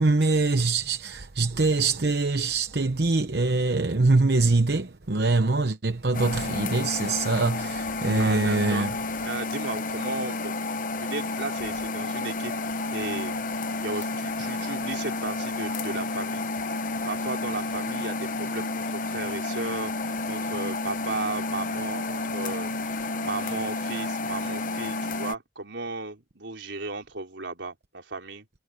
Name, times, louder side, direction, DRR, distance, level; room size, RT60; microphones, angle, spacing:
voice 1, 0.0-8.9, right 3 dB, 60° right, 0.9 m, -23 dB
sound 1, 6.1-25.4, left 3 dB, 45° left, 0.9 m, -31 dB
voice 2, 8.2-8.9 9.2-10.5 11.0-12.5 12.9-13.3 13.8-16.4 17.1-19.9 20.3-28.5, right 3 dB, 80° right, 3.9 m, -35 dB
head